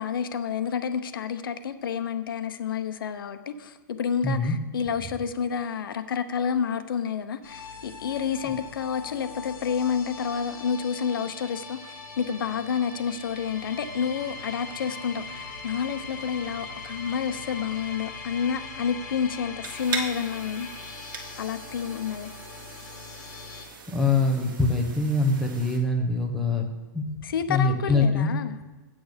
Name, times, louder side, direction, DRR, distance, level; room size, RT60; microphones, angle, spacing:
voice 1, 0.0-20.7 21.4-22.3 27.2-28.6, left 7 dB, 90° left, 10 dB, 0.8 m, -29 dB
voice 2, 4.2-4.5 23.9-26.7 26.9-27.0 27.5-28.3, left 3 dB, ahead, -1 dB, 0.9 m, -23 dB
sound 1, 7.4-23.7, left 4 dB, 50° left, 2.1 m, -41 dB
sound 2, 19.6-25.8, right 4 dB, 70° right, 1.9 m, -39 dB
8.7 x 8.1 x 5.1 m, 1.2 s
supercardioid pair, 165°, 11 cm